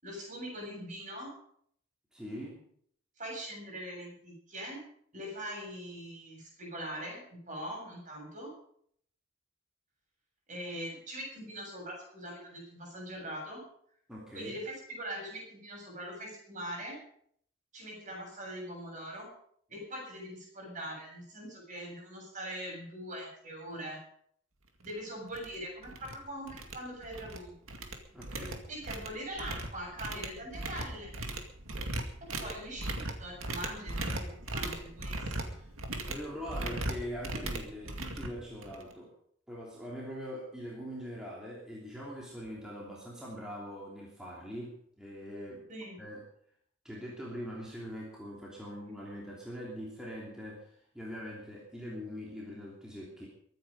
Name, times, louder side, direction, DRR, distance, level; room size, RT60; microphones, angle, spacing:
voice 1, 0.0-1.3 3.2-4.8 5.1-8.5 10.5-13.6 14.3-17.0 17.7-19.3 19.7-24.0 24.8-27.5 28.7-31.2 32.4-35.5 45.7-46.0, equal, 40° right, 0 dB, 7.4 m, -42 dB
voice 2, 2.1-2.6 14.1-14.5 28.1-28.7 35.5-35.7 36.1-39.1 39.5-45.7 46.0-46.2 46.8-53.3, equal, 5° right, -5 dB, 2.9 m, -42 dB
sound 1, 24.8-24.9 25.3-25.6 25.8-26.2 26.5-27.4 27.7-38.9, right 2 dB, 85° right, 2.2 m, -38 dB
23.0 x 9.4 x 5.4 m, 0.65 s
head